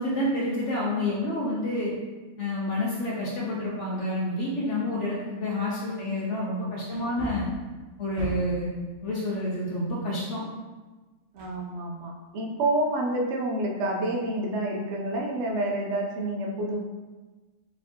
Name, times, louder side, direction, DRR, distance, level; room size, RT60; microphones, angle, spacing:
voice 1, 0.0-1.9 2.4-7.5 8.0-8.7 9.0-10.4, left 1 dB, 65° left, -5 dB, 1.0 m, -28 dB
Wood, 4.9-5.0 5.5-5.6 6.9-8.7 11.4-12.1 12.5-12.6, right 1 dB, 45° right, 1.1 m, -39 dB
voice 2, 11.3-16.8, right 1 dB, 65° right, -1 dB, 0.9 m, -28 dB
4.2 x 3.6 x 2.8 m, 1.2 s
omnidirectional pair, 1.5 m